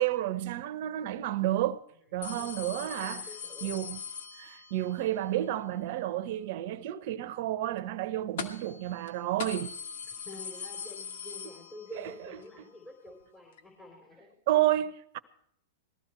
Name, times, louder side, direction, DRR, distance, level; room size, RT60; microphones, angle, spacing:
voice 1, 0.0-1.8 2.1-3.3 3.6-4.0 4.3-9.7 12.0-12.1 14.5-15.2, right 13 dB, 60° right, 1.1 m, -31 dB
sound 1, 2.2-4.9 8.4-8.8 9.1-9.2 9.4-12.1 12.5-12.6 13.6-13.7, left 6 dB, 70° left, 2.0 m, -41 dB
voice 2, 2.2-3.8 10.1-14.4, left 2 dB, 15° left, 3.9 m, -49 dB
20.0 x 14.5 x 4.5 m
hypercardioid pair, 115°, 0 cm